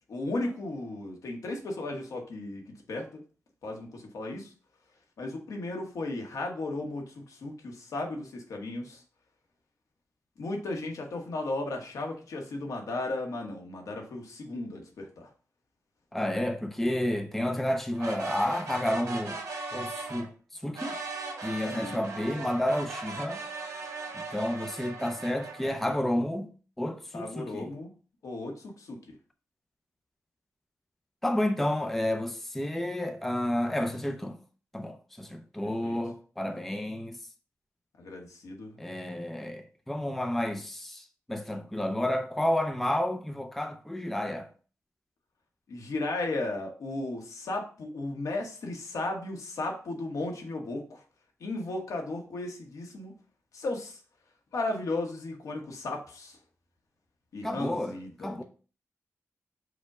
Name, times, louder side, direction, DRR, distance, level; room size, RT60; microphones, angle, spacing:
voice 1, 0.1-2.6 2.9-3.2 3.6-4.5 5.2-9.0 10.4-15.3 21.7-22.0 27.1-27.9 28.2-29.0 35.6-36.0 38.0-38.8 45.7-51.0 51.4-53.1 53.5-54.0 54.5-56.4 57.3-58.4, left 2 dB, 75° left, 1.0 m, -35 dB
voice 2, 16.1-19.4 19.7-20.3 20.6-21.0 21.4-23.4 24.1-26.5 26.8-27.7 31.2-34.4 34.7-37.2 38.8-44.5 57.4-58.4, left 1 dB, 5° left, 0.4 m, -31 dB
sound 1, 17.9-20.3 20.7-25.7, right 3 dB, 80° right, 1.4 m, -38 dB
5.0 x 2.1 x 4.7 m
wide cardioid pair, 130°, 6 cm